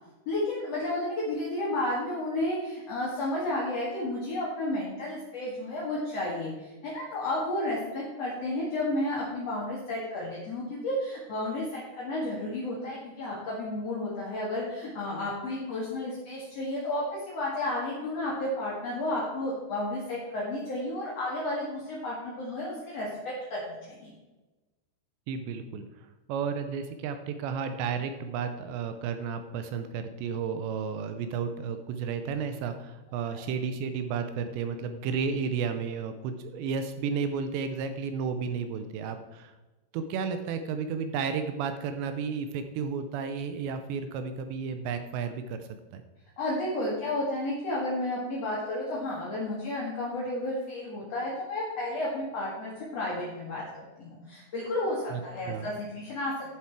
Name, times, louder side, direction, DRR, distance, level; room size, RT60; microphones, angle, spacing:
voice 1, 0.3-23.1 23.5-24.1 33.2-33.4 46.4-53.6 54.0-56.5, left 1 dB, 55° left, -5 dB, 1.8 m, -32 dB
voice 2, 25.3-39.5 39.9-46.0 55.1-55.2 55.5-55.7, right 6 dB, 80° right, 9 dB, 2.6 m, -32 dB
11.0 x 7.1 x 4.7 m, 1.1 s
omnidirectional pair, 5.6 m